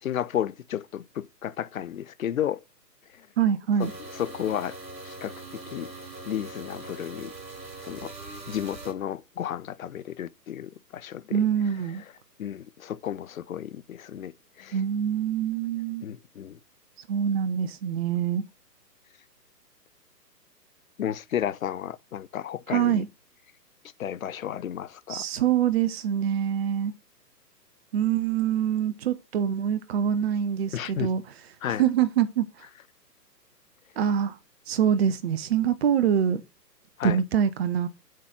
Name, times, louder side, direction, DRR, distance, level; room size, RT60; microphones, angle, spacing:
voice 1, 0.0-2.6 3.1-3.3 3.8-4.8 5.0-5.3 5.7-5.9 6.3-7.3 7.8-8.1 8.5-11.5 12.0-12.1 12.4-14.3 14.6-14.8 16.0-16.6 21.0-23.0 24.0-25.2 30.7-31.1 31.6-31.8 37.0-37.2, left 10 dB, 55° left, 0.8 m, -32 dB
voice 2, 3.4-3.9 11.3-12.0 14.7-16.0 17.1-18.4 22.7-23.1 25.1-26.9 27.9-31.2 31.8-32.5 34.0-34.4 34.7-36.4 37.0-37.9, right 9 dB, 40° right, 0.9 m, -25 dB
sound 1, 3.8-8.9, right 2 dB, 90° right, 3.9 m, -41 dB
7.5 x 4.1 x 6.0 m
figure-of-eight pair, 135°, 50 cm